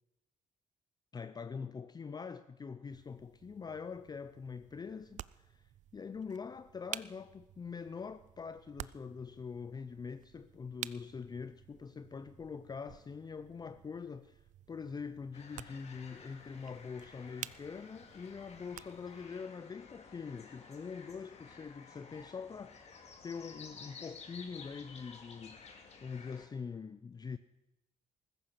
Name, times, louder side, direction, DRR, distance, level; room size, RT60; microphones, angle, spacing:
voice 1, 1.1-25.7 26.0-27.4, left 5 dB, 30° left, 0.5 m, -44 dB
sound 1, 2.9-19.3, right 12 dB, 65° right, 0.4 m, -51 dB
sound 2, 15.3-26.5, left 5 dB, 50° left, 2.4 m, -54 dB
14.5 x 14.5 x 5.8 m
cardioid pair, 80°, 14 cm